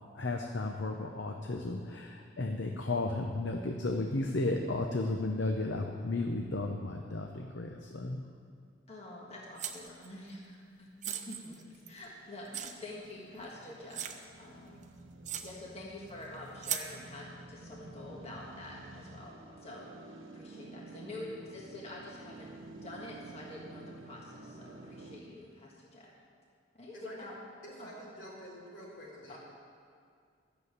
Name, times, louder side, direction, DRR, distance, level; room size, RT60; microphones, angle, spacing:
voice 1, 0.1-8.2, left 2 dB, 65° left, 3 dB, 0.8 m, -34 dB
voice 2, 8.9-11.6 11.9-14.1 14.4-14.9 15.4-19.9 20.3-26.1 26.7-27.4 27.8-27.9 29.3-29.4, left 1 dB, 30° left, -4 dB, 1.7 m, -47 dB
sound 1, 9.6-10.1 11.0-12.1 12.5-12.7 13.4-13.5 13.9-14.2 14.8-14.9 15.3-15.5 16.6-16.9, right 9 dB, 40° right, 0.7 m, -37 dB
sound 2, 11.9-25.2, right 2 dB, 85° right, 1.1 m, -51 dB
voice 3, 26.9-27.4 27.6-29.4, equal, 80° left, -5 dB, 4.0 m, -48 dB
12.5 x 7.0 x 8.1 m, 2.2 s
head